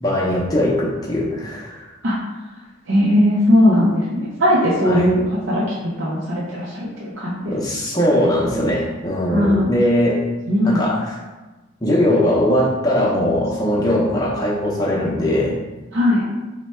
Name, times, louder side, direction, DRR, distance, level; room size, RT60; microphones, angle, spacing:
voice 1, 0.0-1.9 4.8-5.1 7.5-10.2 10.6-11.2 11.8-15.6, left 1 dB, 20° left, -4 dB, 0.6 m, -20 dB
voice 2, 2.9-5.2 5.5-5.6 6.0-7.3 9.3-9.7 10.5-10.8 15.9-16.2, left 1 dB, 65° right, -6 dB, 0.6 m, -18 dB
3.3 x 2.1 x 4.2 m, 1.1 s
head